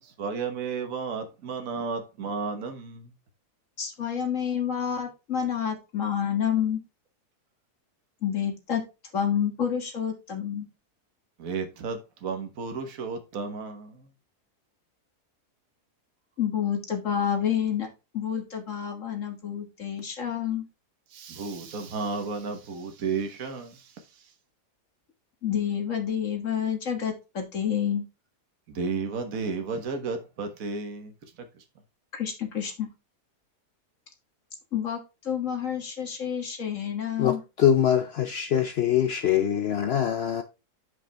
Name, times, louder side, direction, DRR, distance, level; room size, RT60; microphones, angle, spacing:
voice 1, 0.2-3.1 11.4-13.9 21.1-23.7 28.7-31.1, right 4 dB, 60° right, 1.6 m, -32 dB
voice 2, 3.8-6.8 8.2-8.8 9.1-10.7 16.4-17.9 18.1-20.6 25.4-28.0 32.1-32.9 34.7-37.4, left 8 dB, 50° left, 1.8 m, -29 dB
voice 3, 37.2-40.4, left 9 dB, 75° left, 0.5 m, -23 dB
8.7 x 5.2 x 3.4 m
omnidirectional pair, 1.7 m